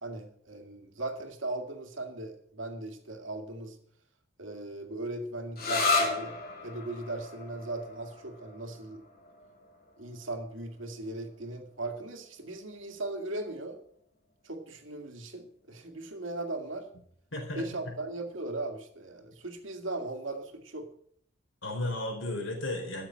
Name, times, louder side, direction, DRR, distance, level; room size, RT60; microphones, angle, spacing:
voice 1, 0.0-3.8 4.4-6.4 6.6-9.0 10.0-13.8 14.4-16.9 17.6-20.9, right 2 dB, 75° right, 5 dB, 2.2 m, -38 dB
sound 1, 5.6-12.9, left 3 dB, 50° left, 2.9 m, -35 dB
voice 2, 17.3-17.9 21.6-23.1, left 1 dB, 75° left, 2 dB, 4.5 m, -34 dB
13.5 x 7.3 x 7.6 m, 0.66 s
head